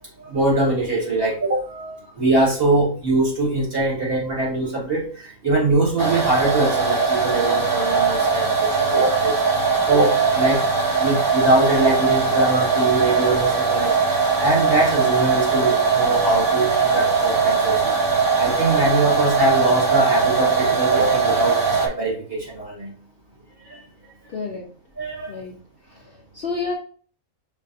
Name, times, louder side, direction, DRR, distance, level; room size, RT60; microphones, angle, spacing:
voice 1, 0.2-9.4 9.9-10.6 11.0-18.0 18.4-22.9 23.7-23.8 25.0-25.3, right 2 dB, 40° right, -5 dB, 2.2 m, -22 dB
sound 1, 6.0-21.9, right 5 dB, 20° right, 0.6 m, -20 dB
voice 2, 24.3-24.7 25.3-25.6 25.9-26.7, left 4 dB, 50° left, -1 dB, 0.8 m, -30 dB
5.5 x 3.3 x 2.6 m, 0.43 s
omnidirectional pair, 1.5 m